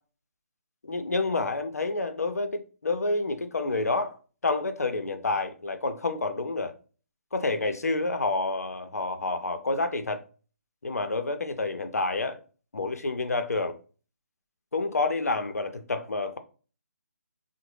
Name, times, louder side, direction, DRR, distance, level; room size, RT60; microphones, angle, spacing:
voice 1, 0.9-4.2 4.4-6.7 7.3-10.2 10.8-12.4 12.7-13.8 14.7-16.4, left 3 dB, 70° left, 0.5 m, -28 dB
3.7 x 2.1 x 3.1 m
figure-of-eight pair, 145°, 9 cm